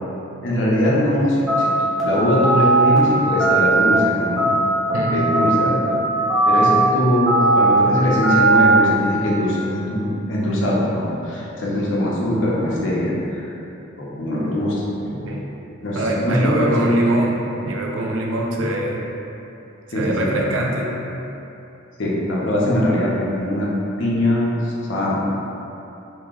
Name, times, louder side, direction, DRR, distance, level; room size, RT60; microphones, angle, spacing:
voice 1, 0.4-1.7 2.0-4.5 4.9-5.9 6.4-13.5 14.0-15.3 15.8-16.9 19.9-20.3 22.0-23.7 24.0-25.2, left 1 dB, 65° left, -6 dB, 0.7 m, -21 dB
sound 1, 1.5-2.0 2.4-3.0 3.4-3.9 4.4-4.9 5.3-5.9 6.3-6.8 7.3-7.8 8.2-8.8, right 2 dB, ahead, 0.6 m, -17 dB
voice 2, 4.9-5.4 15.3-15.5 16.0-19.1 19.9-21.0, right 1 dB, 80° right, -1 dB, 0.5 m, -23 dB
2.9 x 2.8 x 3.6 m, 2.9 s
head